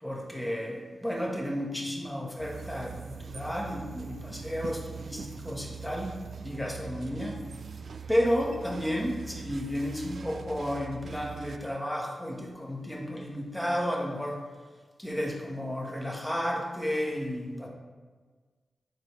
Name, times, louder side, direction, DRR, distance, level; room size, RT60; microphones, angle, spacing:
voice 1, 0.0-7.4 8.1-14.4 15.0-17.7, equal, 5° left, -2 dB, 1.8 m, -32 dB
sound 1, 2.4-11.6, right 6 dB, 75° right, 0.4 m, -42 dB
10.5 x 4.4 x 3.4 m, 1.4 s
cardioid pair, 55°, 0 cm